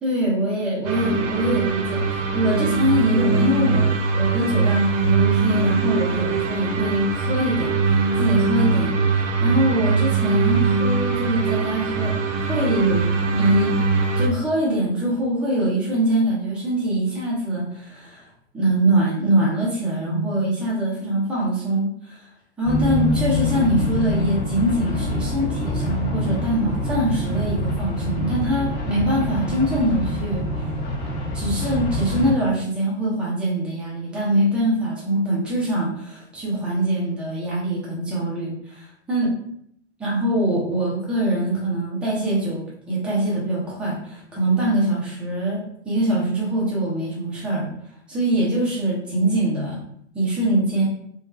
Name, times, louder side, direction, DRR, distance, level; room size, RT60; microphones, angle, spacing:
voice 1, 0.0-12.1 12.5-13.7 14.2-18.2 18.5-22.2 22.6-30.4 31.3-39.3 40.0-47.7 48.1-49.8 50.1-50.9, right 1 dB, 5° right, -6 dB, 0.3 m, -23 dB
sound 1, 0.8-14.3, right 4 dB, 75° right, 0.6 m, -22 dB
sound 2, 22.6-32.3, left 1 dB, 35° left, 1.0 m, -25 dB
2.7 x 2.2 x 2.2 m, 0.68 s
figure-of-eight pair, 105°, 37 cm